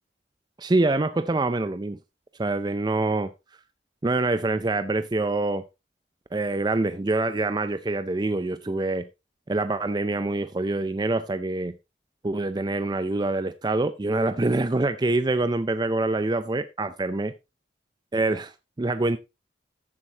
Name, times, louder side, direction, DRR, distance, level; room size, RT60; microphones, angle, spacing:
voice 1, 0.6-2.0 2.4-3.3 4.0-5.6 6.3-9.1 9.5-11.8 12.2-17.3 18.1-19.2, right 2 dB, 25° right, 0.4 m, -25 dB
14.0 x 7.5 x 2.8 m
head